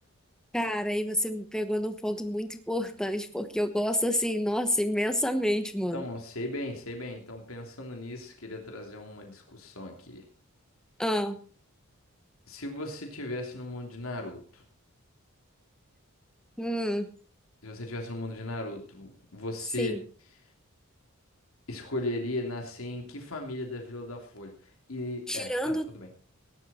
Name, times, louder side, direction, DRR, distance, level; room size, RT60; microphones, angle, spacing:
voice 1, 0.5-6.0 11.0-11.4 16.6-17.1 19.8-20.0 25.3-25.8, equal, 5° left, 8 dB, 1.1 m, -29 dB
voice 2, 5.9-10.2 12.5-14.6 17.6-20.0 21.7-24.5 24.9-26.1, left 1 dB, 70° left, 2 dB, 3.1 m, -37 dB
18.0 x 11.0 x 4.3 m, 0.40 s
head